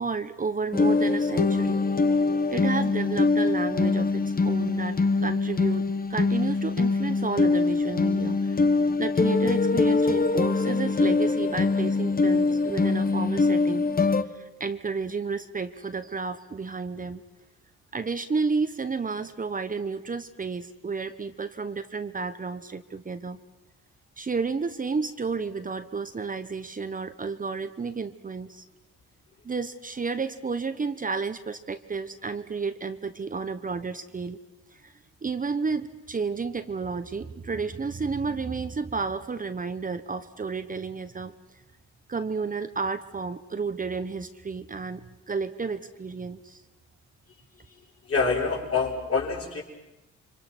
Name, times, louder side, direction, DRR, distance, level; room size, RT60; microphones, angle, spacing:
voice 1, 0.0-1.8 2.5-8.6 9.0-13.8 14.3-17.2 17.9-23.4 24.2-28.6 29.4-34.4 34.7-34.9 35.2-41.3 42.1-45.0 45.3-46.6, right 4 dB, 25° right, 9 dB, 1.1 m, -31 dB
sound 1, 0.7-14.2, left 3 dB, 30° left, 1.2 m, -23 dB
voice 2, 48.1-49.6, left 4 dB, 50° left, -2 dB, 6.4 m, -26 dB
29.5 x 24.5 x 6.2 m, 0.98 s
cardioid pair, 90°, 30 cm